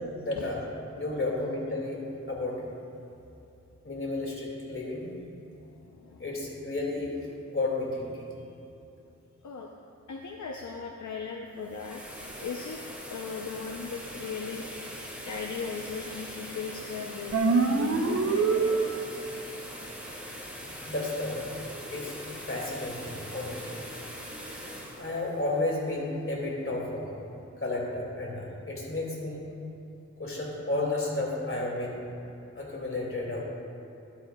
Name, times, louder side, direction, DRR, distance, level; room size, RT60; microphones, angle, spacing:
voice 1, 0.0-0.6 0.9-2.0 2.3-2.7 3.8-5.1 6.2-7.1 7.5-8.3 20.8-21.5 21.9-22.1 22.5-23.7 25.0-27.1 27.6-29.4 30.2-32.0 32.6-33.4, left 2 dB, 45° left, -3 dB, 2.2 m, -32 dB
voice 2, 5.7-6.2 9.4-9.7 10.1-12.0 12.4-15.0 15.2-19.0, left 5 dB, 75° left, 1 dB, 0.6 m, -38 dB
sound 1, 11.5-26.4, equal, 5° right, 1.9 m, -42 dB
sound 2, 17.3-19.3, right 4 dB, 55° right, 0.7 m, -25 dB
12.5 x 11.5 x 2.3 m, 2.9 s
wide cardioid pair, 80°, 29 cm